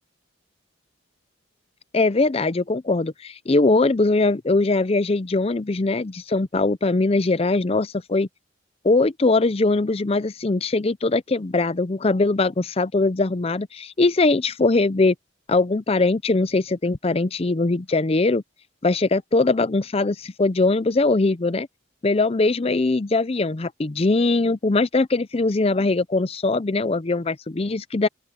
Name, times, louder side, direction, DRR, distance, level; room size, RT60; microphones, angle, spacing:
voice 1, 1.9-8.3 8.8-15.1 15.5-18.4 18.8-21.7 22.0-28.1, left 3 dB, 30° left, 0.5 m, -21 dB
open air
head